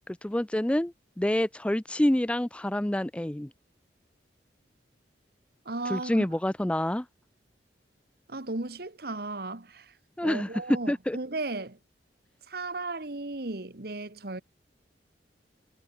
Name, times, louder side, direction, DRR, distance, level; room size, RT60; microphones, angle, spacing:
voice 1, 0.1-3.5 5.9-7.1 10.2-10.5 10.9-11.2, left 1 dB, 5° left, 0.4 m, -27 dB
voice 2, 5.6-6.3 8.3-9.9 10.2-11.8 12.5-14.4, right 2 dB, 60° right, 1.6 m, -35 dB
head